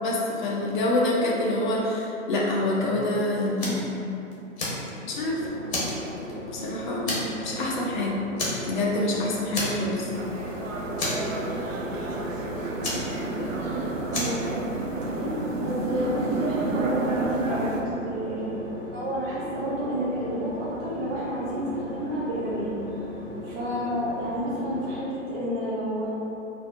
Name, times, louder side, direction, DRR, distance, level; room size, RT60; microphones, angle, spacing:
voice 1, 0.0-3.8 5.0-5.5 6.5-8.1 8.7-10.1 15.2-15.4, left 1 dB, 40° left, -3 dB, 0.7 m, -26 dB
Fire, 3.6-3.9 4.3-5.2 5.7-6.6 7.1-7.5 7.8-7.9 8.4-9.1 9.5-10.1 10.4-10.5 11.0-11.8 12.8-13.7 14.1-14.5, left 2 dB, 55° left, 1.1 m, -30 dB
sound 1, 5.1-25.0, left 1 dB, 10° left, 0.9 m, -38 dB
sound 2, 10.1-17.8, right 3 dB, 75° right, 0.6 m, -30 dB
voice 2, 14.1-14.6 15.1-15.3 15.5-18.5 18.9-22.8 23.4-26.1, equal, 15° right, -8 dB, 0.4 m, -30 dB
4.2 x 2.6 x 2.4 m, 2.8 s
figure-of-eight pair, 120°, 40 cm